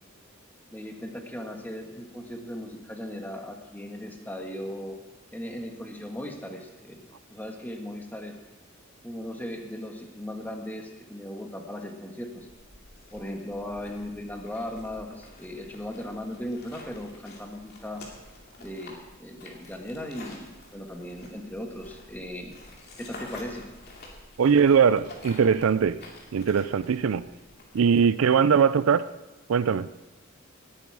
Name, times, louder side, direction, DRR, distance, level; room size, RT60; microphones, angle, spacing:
voice 1, 0.7-5.0 5.3-7.0 7.3-8.4 9.0-12.5 13.1-18.0 18.6-22.5 23.0-23.7, left 1 dB, 10° left, 3 dB, 1.4 m, -37 dB
walking on lava, 12.4-28.0, left 2 dB, 50° left, 2.6 m, -49 dB
voice 2, 24.4-26.0 26.3-27.3 27.7-29.1 29.5-29.9, right 6 dB, 75° right, 16 dB, 0.4 m, -21 dB
18.5 x 9.2 x 4.7 m, 1.0 s
head